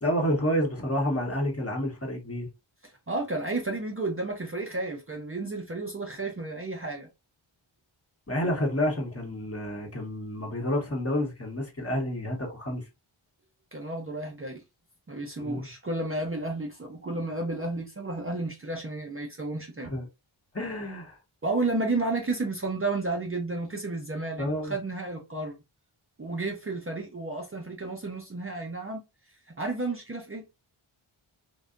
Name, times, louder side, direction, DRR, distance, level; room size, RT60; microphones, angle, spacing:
voice 1, 0.0-2.5 8.3-12.8 15.4-15.7 19.9-20.0 20.5-21.2 24.4-24.7, equal, 30° left, 1.0 m, -29 dB
voice 2, 2.8-7.1 13.7-14.6 15.1-19.9 21.4-25.6 26.2-29.0 29.5-30.4, right 2 dB, 25° right, 0.5 m, -32 dB
2.6 x 2.2 x 2.4 m
wide cardioid pair, 55°, 49 cm